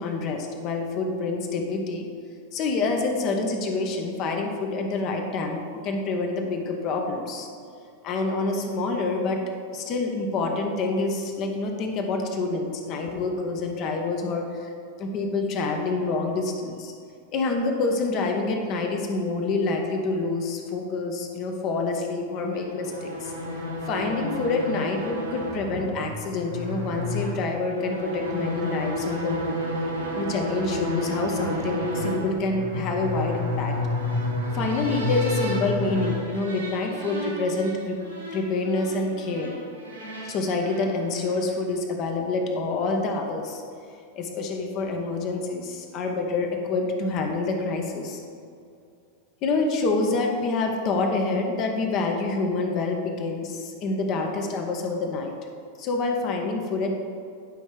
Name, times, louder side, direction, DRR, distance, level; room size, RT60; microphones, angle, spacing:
voice 1, 0.0-2.1 2.5-7.5 8.0-9.4 9.7-14.7 15.0-16.9 17.3-23.3 23.8-29.5 30.1-33.8 34.5-38.0 38.3-39.5 40.2-43.6 44.1-48.2 49.4-55.3 55.8-56.9, left 3 dB, 40° left, 3 dB, 1.2 m, -27 dB
sound 1, 22.5-41.6, left 1 dB, 80° right, 1.7 m, -31 dB
9.9 x 5.5 x 4.8 m, 2.3 s
figure-of-eight pair, 90°, 0 cm